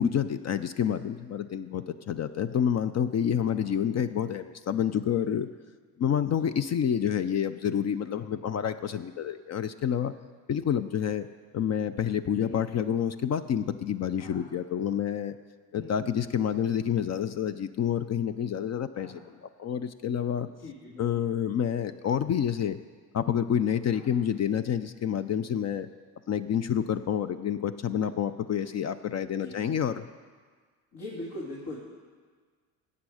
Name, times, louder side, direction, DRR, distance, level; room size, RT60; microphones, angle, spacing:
voice 1, 0.0-5.5 6.0-10.1 10.5-11.3 11.5-15.3 15.7-20.5 21.0-22.8 23.1-25.9 26.3-30.0, left 8 dB, 40° left, 11 dB, 0.5 m, -28 dB
voice 2, 15.7-16.2 19.0-19.2 20.6-21.2 23.9-24.1 29.4-29.5 30.9-31.8, left 2 dB, 70° left, -5 dB, 2.6 m, -42 dB
14.0 x 8.5 x 4.9 m, 1.5 s
supercardioid pair, 75°, 40 cm